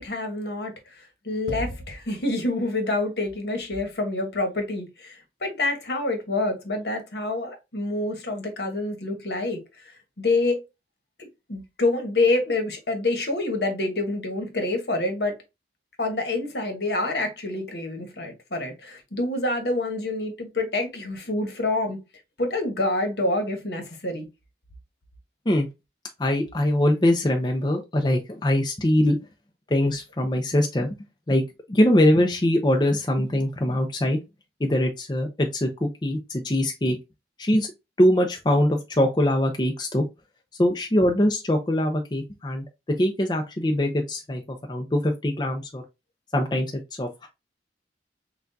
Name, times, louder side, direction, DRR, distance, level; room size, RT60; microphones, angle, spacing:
voice 1, 0.0-10.6 11.5-15.3 16.0-22.0 22.4-24.3, left 2 dB, 65° left, 1.2 m, -27 dB
voice 2, 26.2-29.2 29.7-30.9 31.3-31.4 31.7-34.2 34.6-37.0 37.4-37.7 38.0-40.0 40.6-42.6 43.0-44.4 44.7-45.8 46.3-46.7 47.0-47.3, left 1 dB, 25° left, 0.6 m, -22 dB
5.9 x 2.3 x 2.7 m
head